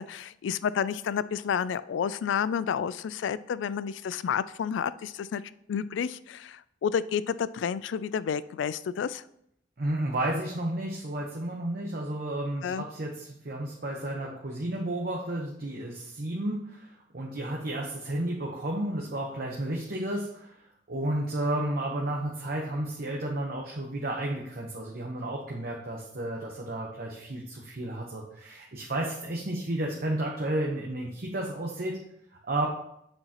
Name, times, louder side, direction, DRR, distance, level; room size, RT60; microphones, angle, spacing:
voice 1, 0.0-5.4 5.7-9.2 12.6-12.8, left 7 dB, 75° left, 17 dB, 0.3 m, -30 dB
voice 2, 9.8-20.6 20.9-32.0 32.4-32.7, right 1 dB, 55° right, -1 dB, 1.0 m, -32 dB
8.1 x 6.9 x 2.9 m, 0.75 s
head